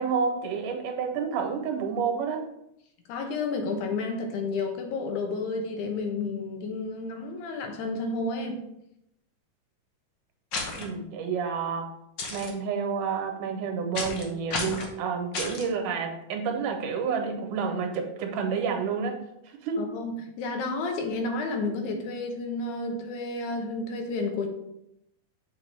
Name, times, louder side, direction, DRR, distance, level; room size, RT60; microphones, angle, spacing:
voice 1, 0.0-2.5 10.7-11.9 12.3-19.2 19.5-19.8, right 5 dB, 80° right, 4 dB, 2.4 m, -29 dB
voice 2, 3.1-8.6 19.8-24.5, left 3 dB, 75° left, 4 dB, 2.2 m, -31 dB
Wet Noise, 10.5-10.8 12.2-12.5 13.9-14.2 14.5-14.9 15.3-15.7, left 3 dB, 90° left, 1.0 m, -32 dB
6.7 x 4.6 x 3.4 m, 0.80 s
omnidirectional pair, 3.7 m